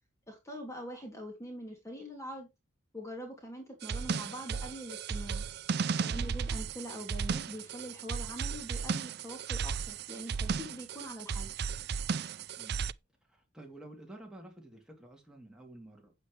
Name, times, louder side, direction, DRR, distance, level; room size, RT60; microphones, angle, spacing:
voice 1, 0.3-2.5 2.9-5.4 6.0-11.5, equal, 15° left, 2.7 m, -44 dB
sound 1, 3.8-12.9, right 5 dB, 50° right, 0.4 m, -35 dB
voice 2, 12.6-12.9 13.2-16.1, right 1 dB, 5° right, 3.1 m, -51 dB
9.3 x 8.8 x 3.3 m
head